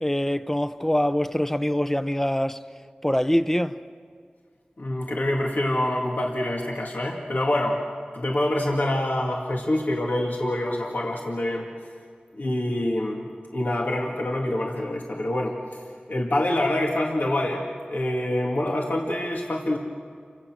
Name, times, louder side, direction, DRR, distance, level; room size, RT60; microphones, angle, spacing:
voice 1, 0.0-2.6 3.0-3.8, equal, 10° left, 0.8 m, -24 dB
voice 2, 4.8-7.8 8.1-11.7 12.3-19.8, left 1 dB, 75° left, 2.3 m, -26 dB
29.5 x 25.0 x 6.3 m
wide cardioid pair, 55°, 3 cm